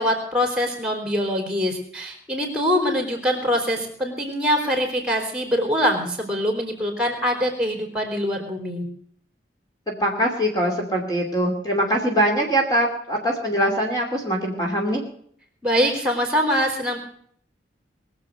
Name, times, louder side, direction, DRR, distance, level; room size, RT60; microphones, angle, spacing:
voice 1, 0.0-8.9 15.6-17.0, equal, 5° right, 3 dB, 3.8 m, -23 dB
voice 2, 9.9-15.0, right 1 dB, 20° left, 0 dB, 2.7 m, -22 dB
22.0 x 7.6 x 7.9 m, 0.63 s
head